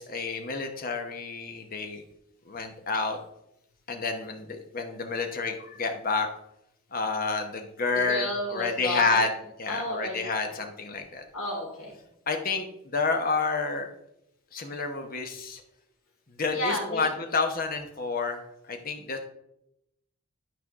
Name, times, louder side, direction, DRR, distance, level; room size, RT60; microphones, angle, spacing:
voice 1, 0.0-2.0 2.5-3.2 3.9-6.3 6.9-9.3 9.6-11.2 12.3-13.9 14.5-15.6 16.4-18.4 18.7-19.3, left 4 dB, 40° left, 5 dB, 0.9 m, -29 dB
voice 2, 7.9-9.3 9.7-10.6 11.3-12.0 16.5-17.1, left 1 dB, 65° left, -3 dB, 2.7 m, -32 dB
11.5 x 4.6 x 3.6 m, 0.81 s
head